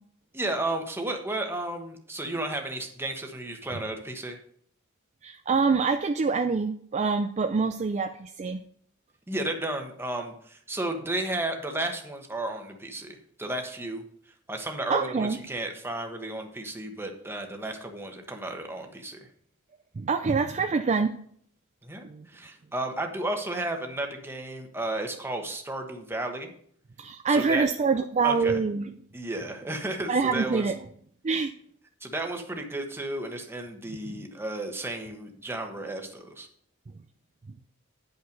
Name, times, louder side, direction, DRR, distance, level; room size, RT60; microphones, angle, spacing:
voice 1, 0.3-4.4 9.3-14.0 14.5-19.2 21.8-26.5 27.3-27.7 28.2-28.6 29.1-30.7 32.0-36.5, right 2 dB, 10° right, 3 dB, 1.2 m, -33 dB
voice 2, 5.2-8.6 14.9-15.4 20.0-21.1 22.0-22.2 27.0-28.9 30.1-30.7 31.2-31.5 34.1-34.2, right 4 dB, 30° right, 7 dB, 0.4 m, -25 dB
9.9 x 5.7 x 5.2 m, 0.62 s
head